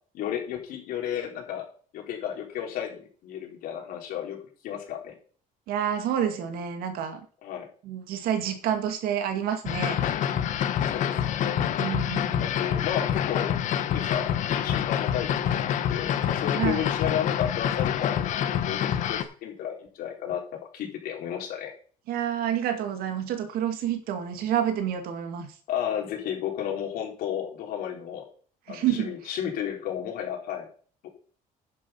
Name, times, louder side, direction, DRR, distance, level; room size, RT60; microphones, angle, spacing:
voice 1, 0.1-1.6 1.9-4.4 4.6-5.1 7.4-7.7 10.9-11.7 12.4-13.6 13.9-20.4 20.7-21.7 25.7-28.2 28.7-30.7, left 9 dB, 75° left, 1 dB, 3.6 m, -33 dB
voice 2, 5.7-7.2 7.8-10.0 11.8-12.5 16.6-16.9 22.1-25.5 28.7-29.2, right 9 dB, 85° right, 7 dB, 2.2 m, -28 dB
sound 1, 9.6-19.2, left 9 dB, 55° left, 1.1 m, -27 dB
10.5 x 7.1 x 5.6 m, 0.44 s
cardioid pair, 175°, 15 cm